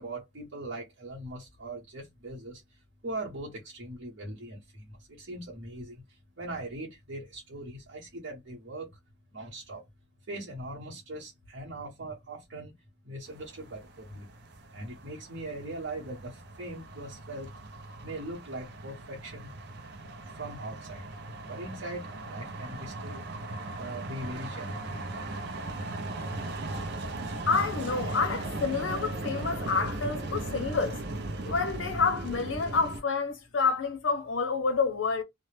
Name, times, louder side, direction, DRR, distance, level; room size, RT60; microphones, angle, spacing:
voice 1, 0.0-2.6 3.0-6.0 6.4-8.9 9.3-9.8 10.3-12.7 13.0-14.3 14.7-17.5 18.0-19.5 20.4-21.1 21.4-23.2 23.8-25.1, right 2 dB, 80° right, 0.9 m, -40 dB
sound 1, 13.3-33.0, right 2 dB, 60° right, 0.5 m, -38 dB
voice 2, 27.5-31.0 31.5-35.2, left 4 dB, 85° left, 0.6 m, -28 dB
2.2 x 2.0 x 3.0 m
head